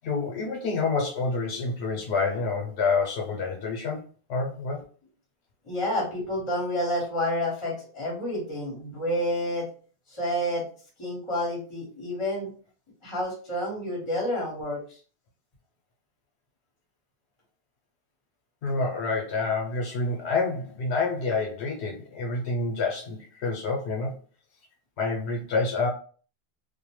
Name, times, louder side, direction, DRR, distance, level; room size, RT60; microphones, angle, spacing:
voice 1, 0.0-4.8 18.6-24.1 25.0-25.9, left 3 dB, 80° left, 0 dB, 0.9 m, -28 dB
voice 2, 5.6-9.7 10.1-10.7 11.0-12.5 13.0-15.0, left 1 dB, 30° left, -3 dB, 1.0 m, -29 dB
2.4 x 2.1 x 3.0 m, 0.41 s
omnidirectional pair, 1.1 m